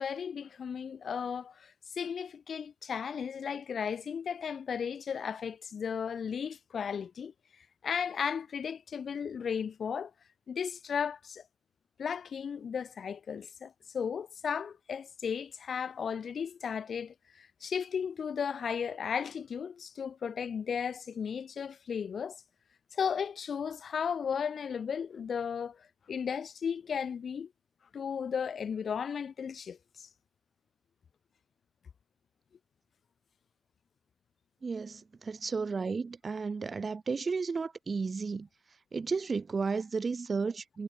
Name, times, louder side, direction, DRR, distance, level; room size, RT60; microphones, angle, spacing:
voice 1, 0.0-7.3 7.8-10.1 10.5-11.4 12.0-22.4 22.9-27.5 27.9-30.1, left 7 dB, 50° left, 2.3 m, -35 dB
voice 2, 34.6-38.5 38.9-40.8, right 4 dB, 35° right, 1.5 m, -33 dB
cardioid pair, 90°, 0 cm